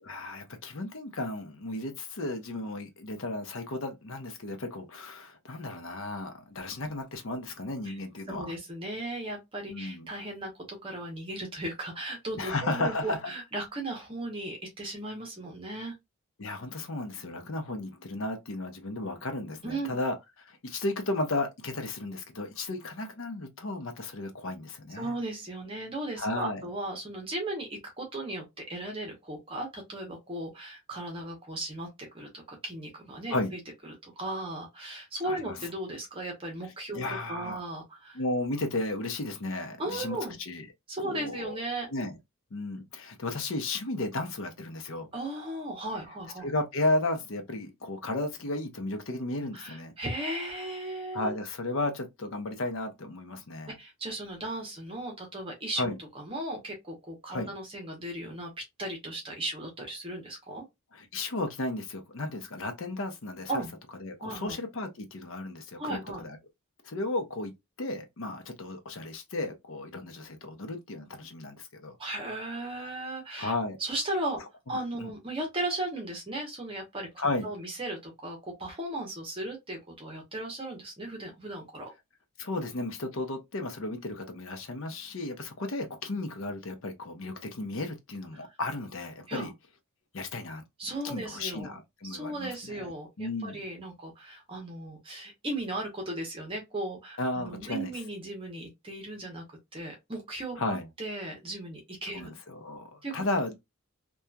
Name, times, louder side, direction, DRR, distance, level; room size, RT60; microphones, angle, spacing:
voice 1, 0.0-8.5 9.7-10.1 12.4-13.2 16.4-25.1 26.2-26.7 33.3-33.5 35.2-35.7 36.9-37.6 38.1-40.2 40.5-40.7 41.0-41.6 41.9-42.1 42.5-45.1 46.4-49.9 51.1-53.7 55.8-56.0 57.3-57.5 60.9-63.6 64.0-66.4 66.8-67.5 67.8-72.0 73.4-73.8 75.0-75.1 77.2-77.5 82.4-89.5 90.1-90.6 91.0-92.9 93.2-93.6 97.2-97.9 100.6-100.9 102.1-103.6, left 2 dB, 60° left, 0.6 m, -34 dB
voice 2, 8.3-15.9 19.6-19.9 24.9-37.0 37.3-38.2 39.8-40.4 40.9-41.9 45.1-46.5 49.5-51.4 53.8-58.5 58.8-60.6 63.5-63.7 64.2-64.6 65.8-66.2 72.0-73.5 73.8-74.4 74.7-81.9 88.3-88.5 89.3-89.5 90.8-91.8 92.0-99.4 99.7-102.3 103.0-103.2, right 1 dB, 25° right, 0.8 m, -36 dB
2.8 x 2.3 x 2.2 m
head